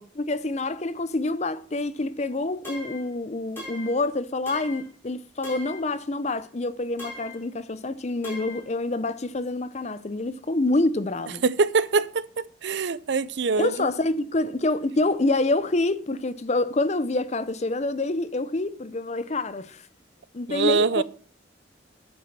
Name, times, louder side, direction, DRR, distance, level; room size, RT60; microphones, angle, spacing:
voice 1, 0.2-11.4 13.6-19.8 20.3-21.0, left 2 dB, 35° left, 0.6 m, -27 dB
sound 1, 2.6-3.1 3.6-4.0 4.5-4.9 5.4-5.9 7.0-7.4 8.2-8.7, left 1 dB, 15° left, 4.8 m, -40 dB
voice 2, 11.4-13.9 20.5-21.0, right 4 dB, 70° right, 0.6 m, -24 dB
9.8 x 6.0 x 7.3 m
head